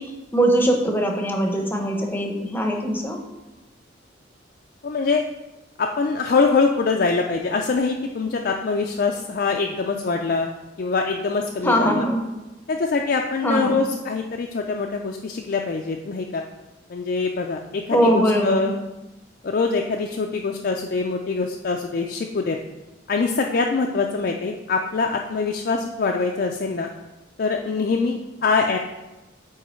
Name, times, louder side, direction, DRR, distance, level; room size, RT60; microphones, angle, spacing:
voice 1, 0.0-3.2 11.6-12.2 13.4-13.8 17.9-18.7, right 1 dB, 10° left, 2 dB, 0.7 m, -21 dB
voice 2, 4.8-5.2 5.8-10.5 10.8-12.1 12.7-16.4 16.9-18.8 19.4-22.6 23.1-26.9 27.4-28.8, left 4 dB, 50° left, 2 dB, 0.4 m, -24 dB
8.4 x 3.2 x 4.3 m, 1.0 s
head